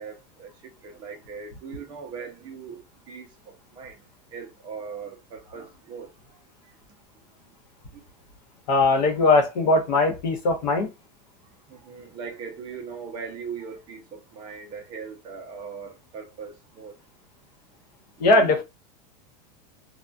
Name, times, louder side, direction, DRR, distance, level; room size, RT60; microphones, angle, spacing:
voice 1, 0.0-2.8 3.1-4.0 4.3-6.1 7.9-8.0 11.7-16.9 18.4-18.5, right 6 dB, 20° right, 0.4 m, -39 dB
voice 2, 8.7-10.9 18.2-18.6, left 2 dB, 85° left, 1.0 m, -20 dB
2.6 x 2.2 x 2.2 m
supercardioid pair, 175°, 21 cm